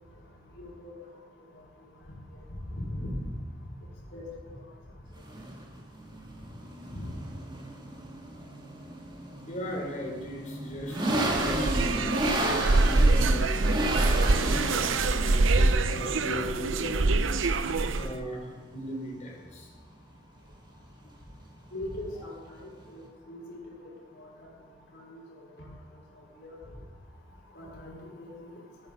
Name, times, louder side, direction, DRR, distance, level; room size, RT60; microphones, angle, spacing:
voice 1, 0.6-0.9 2.3-2.4 2.7-3.3 4.1-4.2 4.5-4.6 21.7-22.3 22.6-23.0 23.3-23.6 24.2-24.3 24.9-25.2 25.6-25.7 26.4-26.6 27.6-28.5, left 1 dB, 60° left, -3 dB, 5.5 m, -39 dB
sound 1, 5.1-23.1, right 1 dB, 25° right, 2.4 m, -34 dB
voice 2, 9.5-17.1 17.9-19.7, equal, 40° left, -1 dB, 3.9 m, -38 dB
sound 2, 11.0-18.2, right 3 dB, 75° right, 0.7 m, -25 dB
14.5 x 13.5 x 5.5 m, 1.3 s
head